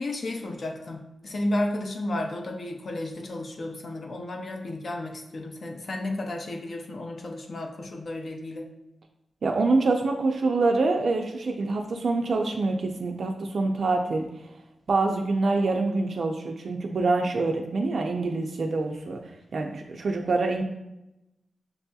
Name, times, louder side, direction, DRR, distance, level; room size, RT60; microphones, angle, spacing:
voice 1, 0.0-8.7, left 1 dB, 50° left, 3 dB, 0.4 m, -32 dB
voice 2, 9.4-14.5 14.9-19.2 19.5-20.6, right 3 dB, 60° right, 2 dB, 0.3 m, -25 dB
6.4 x 2.7 x 2.2 m, 0.92 s
wide cardioid pair, 170°, 0 cm